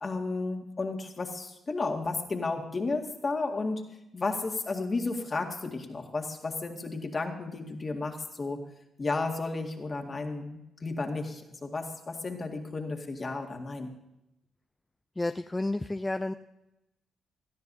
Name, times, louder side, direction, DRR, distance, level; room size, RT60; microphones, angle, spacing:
voice 1, 0.0-3.8 4.1-8.6 9.0-13.9, left 3 dB, 40° left, 3 dB, 2.0 m, -33 dB
voice 2, 15.2-16.3, left 2 dB, 20° left, 8 dB, 0.5 m, -31 dB
18.5 x 13.0 x 2.8 m, 0.91 s
supercardioid pair, 50°, 0 cm